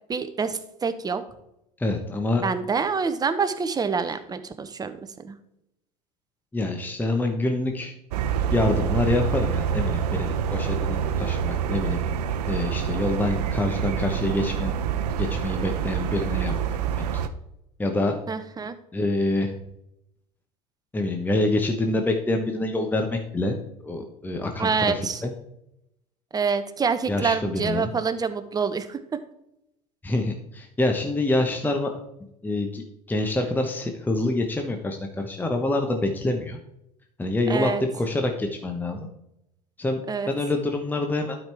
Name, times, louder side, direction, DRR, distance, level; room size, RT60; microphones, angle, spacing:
voice 1, 0.1-1.2 2.4-5.4 18.3-18.7 24.6-25.2 26.3-29.0 37.5-37.8 40.1-40.3, right 5 dB, 20° right, 11 dB, 0.8 m, -26 dB
voice 2, 1.8-2.4 6.5-7.9 8.5-12.0 12.5-14.7 15.2-16.8 17.8-18.2 18.9-19.5 20.9-23.6 23.8-25.3 27.1-27.9 30.0-31.9 32.4-36.6 37.2-39.1 39.8-40.0 40.3-41.4, left 2 dB, 10° left, 4 dB, 1.0 m, -26 dB
sound 1, 8.1-17.3, right 7 dB, 70° right, 0.7 m, -26 dB
12.0 x 5.1 x 3.4 m, 0.82 s
hypercardioid pair, 80°, 21 cm